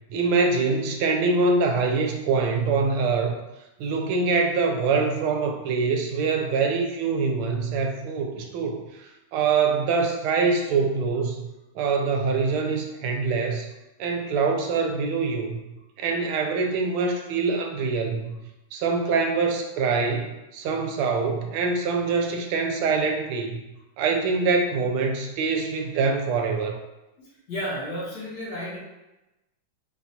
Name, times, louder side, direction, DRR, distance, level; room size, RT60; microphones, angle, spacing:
voice 1, 0.1-3.3 3.8-9.1 9.3-11.4 11.7-13.7 14.0-15.6 16.0-18.4 18.7-23.6 24.0-26.8, right 4 dB, 85° right, 3 dB, 1.4 m, -24 dB
voice 2, 27.2-28.8, equal, 60° left, -7 dB, 1.4 m, -33 dB
4.2 x 2.3 x 2.7 m, 0.98 s
omnidirectional pair, 2.3 m